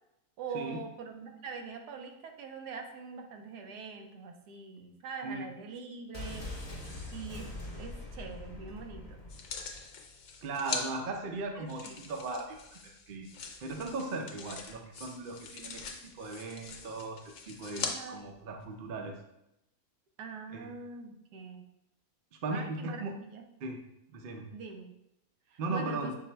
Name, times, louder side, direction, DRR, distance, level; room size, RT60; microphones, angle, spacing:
voice 1, 0.4-6.5 7.1-9.2 11.6-12.1 17.8-18.3 20.2-21.6 22.5-23.4 24.5-24.9 25.5-26.1, right 5 dB, 90° right, 4 dB, 1.2 m, -43 dB
sound 1, 6.1-9.9 10.2-10.3, left 2 dB, 30° left, 0.8 m, -43 dB
sound 2, 9.3-10.8 11.7-17.9 18.6-18.7, left 5 dB, 65° left, 0.9 m, -42 dB
voice 2, 10.4-13.3 13.6-15.8 16.1-19.2 20.5-20.7 22.4-23.1 23.6-23.8 24.1-24.5 25.6-26.1, right 3 dB, 65° right, 3 dB, 0.5 m, -37 dB
5.9 x 2.0 x 4.3 m, 0.84 s
omnidirectional pair, 1.7 m